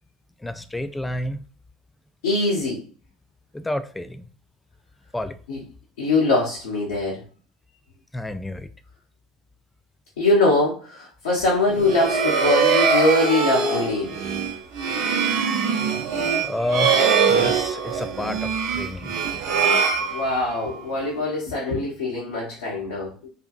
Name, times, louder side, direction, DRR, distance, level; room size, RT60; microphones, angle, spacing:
voice 1, 0.4-1.4 3.5-4.3 5.1-5.4 8.1-8.7 15.0-15.2 16.4-19.2, left 1 dB, 10° left, 0.3 m, -30 dB
voice 2, 2.2-2.8 5.5-5.6 6.0-7.2 10.2-14.2 20.1-23.3, left 2 dB, 80° left, 0.8 m, -22 dB
sound 1, 11.7-20.7, right 5 dB, 65° right, 0.5 m, -22 dB
2.6 x 2.5 x 2.4 m
hypercardioid pair, 70°, 0 cm